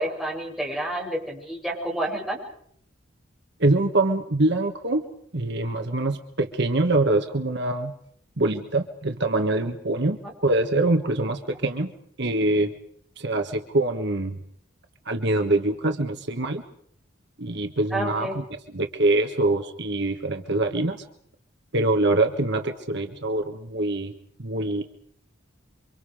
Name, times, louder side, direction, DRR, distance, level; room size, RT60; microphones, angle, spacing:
voice 1, 0.0-2.4 10.2-10.3 17.9-18.4, right 1 dB, ahead, -2 dB, 7.1 m, -29 dB
voice 2, 3.6-5.0 5.3-7.9 8.4-11.9 12.2-12.7 13.2-14.4 15.0-16.6 17.4-18.4 18.7-21.0 21.7-24.1 24.4-24.8, right 2 dB, 55° right, 5 dB, 1.5 m, -24 dB
28.5 x 25.0 x 5.0 m, 0.67 s
head